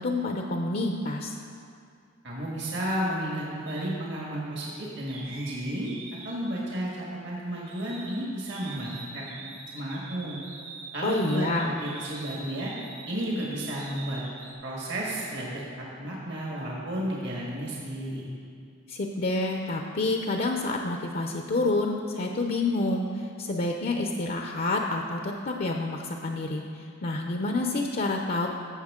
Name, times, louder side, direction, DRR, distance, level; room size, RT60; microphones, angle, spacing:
voice 1, 0.0-1.4 11.0-11.7 18.9-28.5, left 2 dB, 45° left, 2 dB, 0.5 m, -28 dB
voice 2, 2.2-5.9 6.2-10.4 10.9-12.7 13.1-14.2 14.6-15.7 16.0-18.3, right 1 dB, 60° right, -4 dB, 1.6 m, -32 dB
sound 1, 3.7-3.9 5.1-8.2 8.5-14.5, right 3 dB, 80° right, 2.0 m, -44 dB
13.5 x 7.1 x 3.7 m, 2.4 s
head